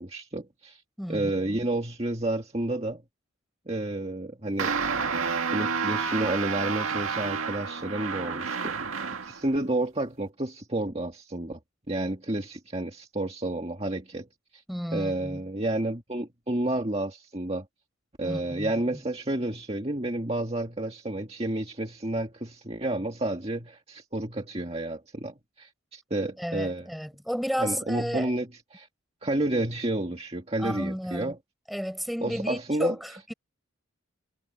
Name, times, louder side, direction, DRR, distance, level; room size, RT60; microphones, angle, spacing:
voice 1, 0.0-0.8 1.1-3.0 3.7-4.8 5.5-8.7 9.2-11.6 11.9-14.3 14.5-14.6 14.9-17.7 18.2-26.9 27.6-28.9 29.2-31.4 32.2-33.0, right 1 dB, 30° right, 1.9 m, -30 dB
voice 2, 1.0-1.6 14.7-15.4 18.2-19.0 26.4-28.3 30.6-31.3 31.7-33.3, equal, ahead, 6.9 m, -33 dB
sound 1, 4.6-9.4, right 5 dB, 75° right, 2.0 m, -30 dB
head